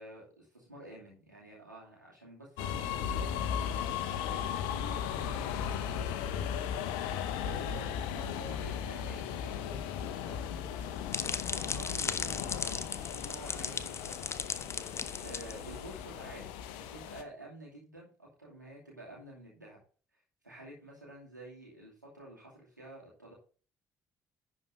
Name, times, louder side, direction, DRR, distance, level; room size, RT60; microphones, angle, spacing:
voice 1, 0.0-16.4 16.7-19.8 20.4-23.3, right 1 dB, 90° right, -4 dB, 2.4 m, -50 dB
sound 1, 2.6-17.2, left 8 dB, 65° left, 0.8 m, -36 dB
sound 2, 10.6-16.0, left 5 dB, 30° left, 0.7 m, -37 dB
10.5 x 4.5 x 5.2 m, 0.38 s
figure-of-eight pair, 45°, 10 cm